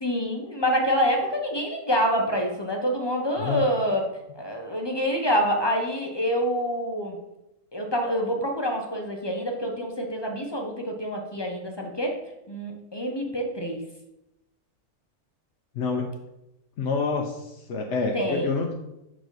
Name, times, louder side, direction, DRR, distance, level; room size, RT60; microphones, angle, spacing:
voice 1, 0.0-4.0 4.3-7.2 7.7-12.2 12.5-13.8 18.1-18.5, equal, 35° left, 1 dB, 0.4 m, -26 dB
voice 2, 15.7-16.1 16.8-18.7, left 4 dB, 60° left, 1 dB, 0.8 m, -27 dB
6.4 x 4.8 x 3.9 m, 0.90 s
omnidirectional pair, 1.6 m